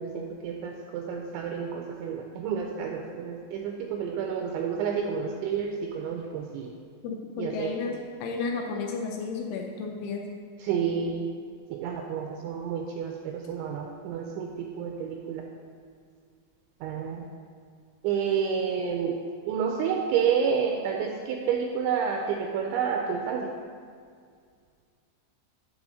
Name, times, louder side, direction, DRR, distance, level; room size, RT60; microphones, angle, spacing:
voice 1, 0.0-6.7 7.4-7.7 10.6-11.3 11.7-15.4 16.8-17.3 18.0-19.2 19.5-23.5, right 7 dB, 85° right, 2 dB, 2.6 m, -29 dB
voice 2, 7.0-10.2, left 4 dB, 80° left, 1 dB, 2.8 m, -33 dB
9.6 x 3.8 x 6.3 m, 2.1 s
omnidirectional pair, 5.7 m